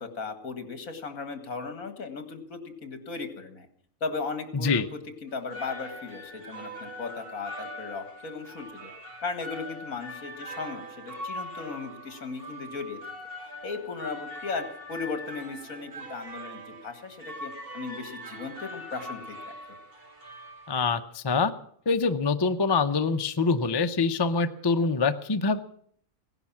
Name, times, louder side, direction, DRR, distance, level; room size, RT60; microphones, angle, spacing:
voice 1, 0.0-3.7 4.0-4.8 5.2-8.9 9.2-13.0 13.6-19.4 19.7-19.8, left 4 dB, 65° left, 7 dB, 2.2 m, -36 dB
voice 2, 4.5-4.8 20.7-21.5 21.9-25.6, left 4 dB, 30° left, 8 dB, 0.4 m, -25 dB
sound 1, 5.3-21.2, equal, 40° right, 1.9 m, -42 dB
17.0 x 11.0 x 7.2 m, 0.63 s
omnidirectional pair, 1.6 m